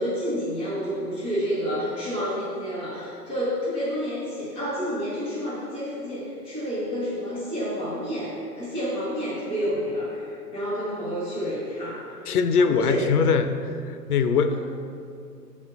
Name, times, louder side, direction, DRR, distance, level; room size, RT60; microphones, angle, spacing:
voice 1, 0.0-12.1 12.5-13.1 14.5-14.6, equal, 5° right, -7 dB, 0.3 m, -29 dB
voice 2, 12.3-13.5 13.8-14.6, left 5 dB, 65° left, 9 dB, 0.6 m, -22 dB
5.3 x 4.3 x 5.6 m, 2.4 s
figure-of-eight pair, 115°, 48 cm